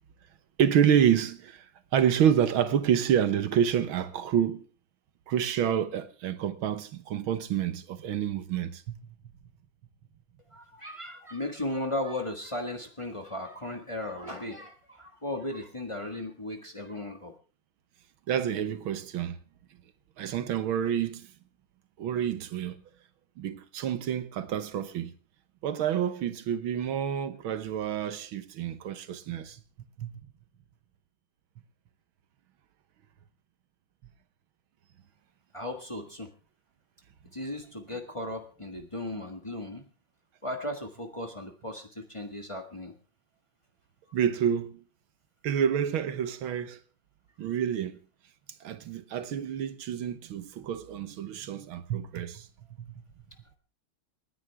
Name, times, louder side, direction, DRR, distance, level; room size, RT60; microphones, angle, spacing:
voice 1, 0.6-4.7 5.3-9.0 18.3-19.4 20.2-21.3 22.0-22.8 23.4-25.1 25.6-29.6 30.0-30.1 44.1-44.8 45.4-46.8 47.4-48.0 48.6-52.5 52.8-53.0, right 9 dB, 75° right, 1.8 m, -28 dB
voice 2, 10.5-17.3 35.5-36.3 37.3-39.8 40.4-42.9, left 1 dB, 15° left, 1.5 m, -36 dB
29.0 x 10.0 x 3.5 m
omnidirectional pair, 2.3 m